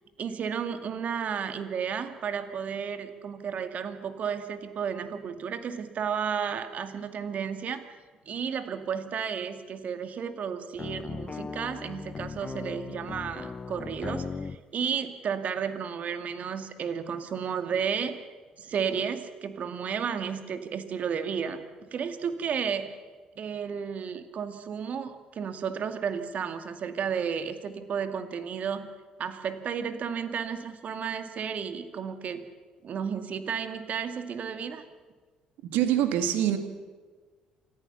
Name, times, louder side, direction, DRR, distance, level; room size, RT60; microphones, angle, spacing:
voice 1, 0.2-7.8 8.3-18.3 18.6-21.6 21.9-22.9 23.4-28.9 29.2-32.4 32.8-34.8, right 7 dB, 50° right, 8 dB, 2.2 m, -32 dB
sound 1, 10.8-14.6, left 5 dB, 35° left, 0.8 m, -38 dB
voice 2, 35.7-36.6, right 11 dB, 70° right, 8 dB, 2.1 m, -24 dB
27.5 x 14.5 x 7.0 m, 1.4 s
hypercardioid pair, 50°, 3 cm